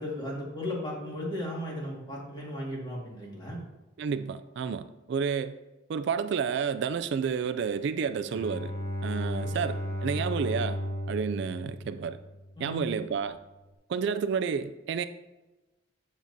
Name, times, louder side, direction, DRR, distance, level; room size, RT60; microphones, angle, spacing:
voice 1, 0.0-3.7 9.4-9.5 12.6-12.8, left 1 dB, 25° left, 1.9 m, -36 dB
voice 2, 4.0-5.5 5.9-8.7 9.0-10.8 11.1-12.2 12.6-13.4 13.9-15.0, right 6 dB, 60° right, 0.3 m, -30 dB
Bowed string instrument, 8.2-12.7, equal, 50° left, 0.9 m, -34 dB
7.4 x 7.2 x 2.7 m
head